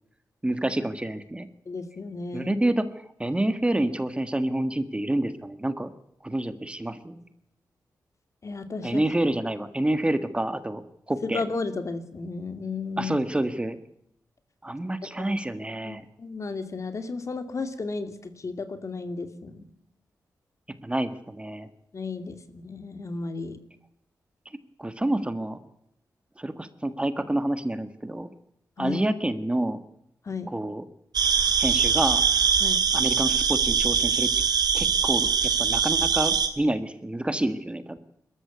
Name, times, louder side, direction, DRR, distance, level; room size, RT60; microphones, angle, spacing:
voice 1, 0.4-1.5 2.3-2.8 3.2-5.9 6.2-7.2 8.8-11.5 13.0-13.8 14.6-16.0 20.8-21.7 24.8-25.6 26.4-28.3 28.8-29.8 30.5-30.8 31.6-32.2 32.9-34.3 34.7-38.0, right 1 dB, 15° right, 12 dB, 1.6 m, -28 dB
voice 2, 1.7-2.6 8.4-9.0 11.3-13.2 15.3-15.4 15.8-19.6 21.9-23.6 28.8-29.0 30.3-30.5 32.6-32.8, left 4 dB, 50° left, 10 dB, 2.4 m, -33 dB
sound 1, 31.1-36.5, right 6 dB, 75° right, 2.5 m, -22 dB
21.0 x 13.5 x 9.3 m, 0.77 s
cardioid pair, 75°, 7 cm